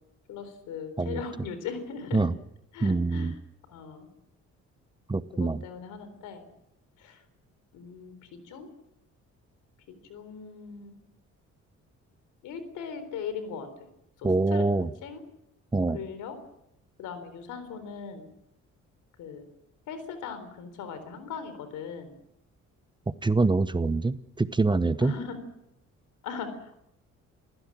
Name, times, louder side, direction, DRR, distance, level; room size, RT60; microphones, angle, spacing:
voice 1, 0.3-2.3 2.7-3.4 3.7-4.1 5.3-6.4 7.0-7.2 7.7-8.7 9.9-11.0 12.4-13.7 14.2-14.6 15.0-15.2 15.9-16.3 17.0-18.3 19.2-19.4 19.9-22.2 25.0-25.4 26.2-26.8, left 6 dB, 90° left, 10 dB, 4.0 m, -39 dB
voice 2, 2.8-3.3 5.1-5.6 14.2-14.9 15.7-16.0 23.2-25.1, right 3 dB, 15° right, 14 dB, 0.9 m, -25 dB
29.0 x 16.0 x 7.5 m, 0.82 s
cardioid pair, 90°, 30 cm